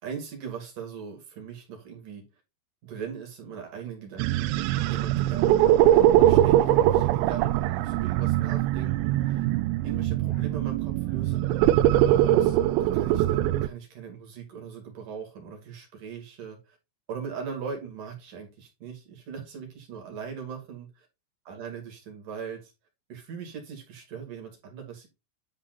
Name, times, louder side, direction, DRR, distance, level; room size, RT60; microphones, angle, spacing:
voice 1, 0.0-2.2 2.8-5.5 5.9-9.4 9.8-11.4 12.0-16.8 17.1-20.9 21.5-22.7 23.1-25.1, right 6 dB, 50° right, 3.4 m, -40 dB
sound 1, 4.2-13.7, right 13 dB, 85° right, 3.1 m, -22 dB
Musical instrument, 5.7-11.5, left 7 dB, 75° left, 3.6 m, -52 dB
10.5 x 4.1 x 4.0 m
omnidirectional pair, 5.8 m